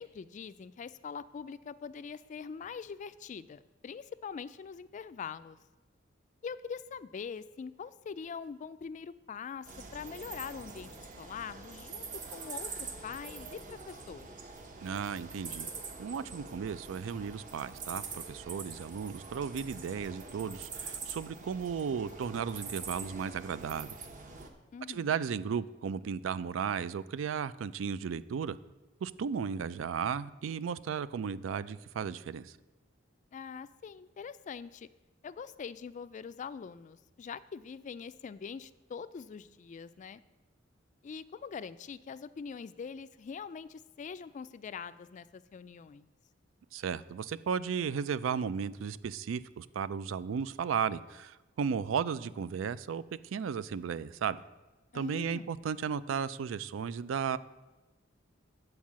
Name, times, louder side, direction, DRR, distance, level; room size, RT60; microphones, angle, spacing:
voice 1, 0.0-5.6 6.4-10.9 11.2-14.4 24.7-25.1 33.3-34.9 35.2-40.2 41.0-46.1 54.9-55.5, left 6 dB, 40° left, 14 dB, 0.3 m, -43 dB
sound 1, 9.6-24.5, right 4 dB, 45° right, 0.9 m, -44 dB
voice 2, 14.8-15.7 16.0-23.9 24.9-28.6 29.0-32.5 46.7-53.0 53.3-54.4 54.9-57.4, right 6 dB, 90° right, 16 dB, 0.4 m, -35 dB
8.9 x 4.6 x 7.4 m, 1.2 s
head